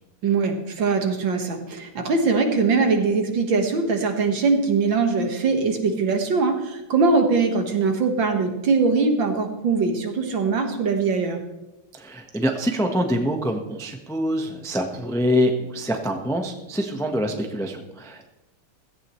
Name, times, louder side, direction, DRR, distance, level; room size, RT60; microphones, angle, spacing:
voice 1, 0.2-11.4, right 4 dB, 60° right, 4 dB, 2.2 m, -22 dB
voice 2, 11.9-18.3, equal, 5° left, 3 dB, 0.6 m, -25 dB
16.5 x 15.0 x 3.2 m, 0.98 s
omnidirectional pair, 2.4 m